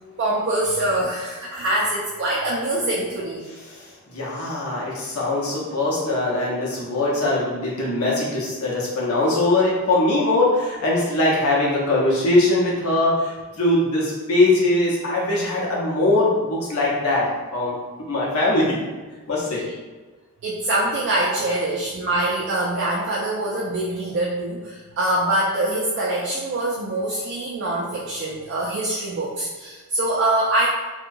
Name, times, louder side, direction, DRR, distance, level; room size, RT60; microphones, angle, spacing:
voice 1, 0.2-3.4 20.4-30.7, right 1 dB, 50° right, -5 dB, 0.3 m, -24 dB
voice 2, 4.1-17.8 18.1-18.8 19.3-19.6, left 2 dB, 80° left, -5 dB, 0.8 m, -21 dB
2.7 x 2.2 x 2.6 m, 1.3 s
head